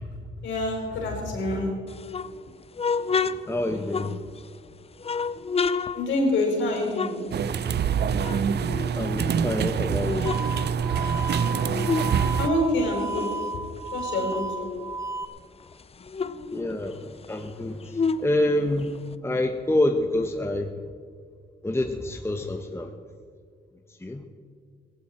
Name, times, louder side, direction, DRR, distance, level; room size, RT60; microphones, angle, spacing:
voice 1, 0.4-1.7 5.9-7.2 12.4-13.3 13.9-14.7, left 1 dB, 90° left, 0 dB, 4.7 m, -26 dB
sound 1, 1.9-4.6 5.0-7.9 8.2-9.5 9.9-12.2 12.5-15.0 15.4-15.5 15.7-19.1, left 5 dB, 30° left, 0.6 m, -31 dB
voice 2, 3.2-4.2 8.1-8.6 8.9-10.3 16.5-20.7 21.6-22.9 24.0-24.2, left 1 dB, 15° left, 5 dB, 1.0 m, -27 dB
sound 2, 7.3-12.5, right 7 dB, 60° right, 0.6 m, -25 dB
sound 3, 10.3-15.3, right 2 dB, 15° right, 1.0 m, -34 dB
17.0 x 15.0 x 4.4 m, 2.1 s
cardioid pair, 80°, 19 cm